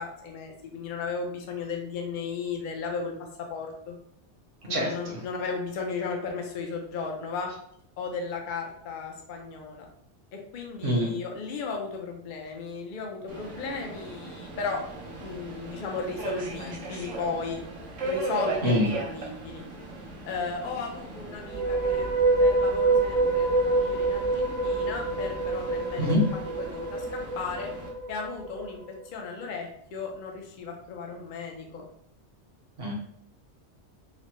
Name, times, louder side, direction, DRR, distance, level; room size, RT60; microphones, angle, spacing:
voice 1, 0.0-3.1 3.4-3.9 4.6-7.5 8.0-9.8 10.3-14.8 15.2-17.6 18.0-19.6 20.3-22.1 22.4-26.1 26.7-27.1 27.4-27.7 28.1-31.8, left 4 dB, 55° left, 1 dB, 0.6 m, -35 dB
voice 2, 4.7-5.2 10.8-11.1 18.6-18.9 26.0-26.2 32.8-32.9, equal, 65° right, -3 dB, 1.3 m, -25 dB
Subway metro underground, 13.3-27.9, right 2 dB, 90° right, 1.2 m, -39 dB
sound 1, 21.4-28.7, right 2 dB, 80° left, 1.4 m, -26 dB
4.1 x 2.1 x 3.1 m, 0.68 s
omnidirectional pair, 1.2 m